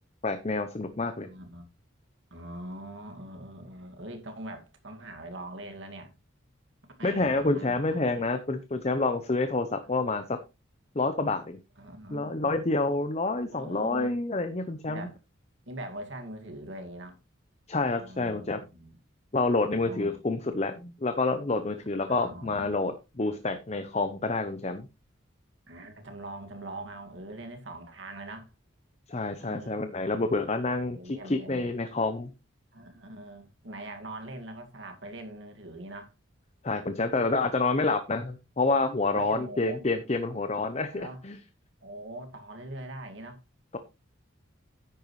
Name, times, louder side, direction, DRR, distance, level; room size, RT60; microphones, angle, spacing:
voice 1, 0.2-1.3 7.0-10.4 10.9-11.6 12.1-15.1 17.7-18.6 19.3-24.9 29.1-32.3 36.6-41.4 43.7-43.8, left 3 dB, 30° left, 0.7 m, -28 dB
voice 2, 1.2-1.7 2.3-6.1 7.0-8.3 9.8-10.1 11.8-12.6 13.5-14.2 14.8-15.2 15.7-17.2 18.0-19.0 19.6-20.2 22.1-22.8 25.7-28.5 29.4-31.7 32.7-36.1 39.1-39.9 40.9-41.2 41.8-43.4, right 1 dB, 65° right, 2.1 m, -42 dB
10.5 x 9.0 x 3.2 m
head